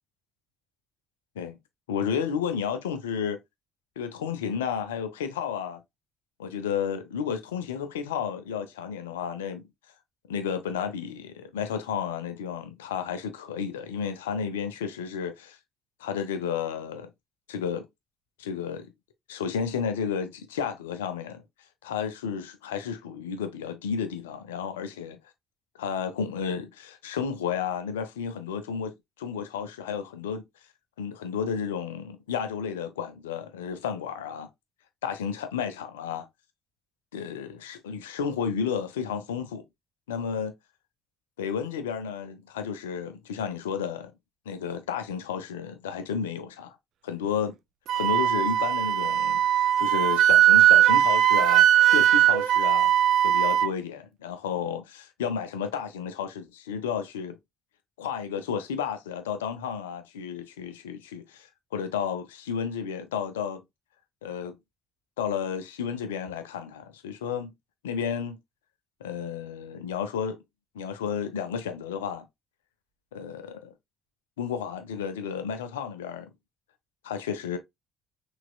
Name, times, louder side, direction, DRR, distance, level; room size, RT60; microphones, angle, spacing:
voice 1, 1.9-3.4 4.0-5.8 6.4-9.7 10.3-15.6 16.0-17.1 17.5-17.9 18.4-18.9 19.3-21.4 21.8-25.2 25.8-30.4 31.0-34.5 35.0-36.3 37.1-39.6 40.1-40.5 41.4-44.1 44.5-46.8 47.0-47.6 47.9-52.9 53.2-57.4 58.0-63.6 64.2-64.6 65.2-67.5 67.8-68.4 69.0-70.4 70.7-72.3 73.1-73.7 74.4-76.3 77.0-77.6, left 7 dB, 75° left, 0.7 m, -32 dB
Wind instrument woodwind instrument, 47.9-53.7, right 11 dB, 55° right, 0.4 m, -20 dB
5.9 x 3.4 x 2.3 m
figure-of-eight pair, 50°, 0 cm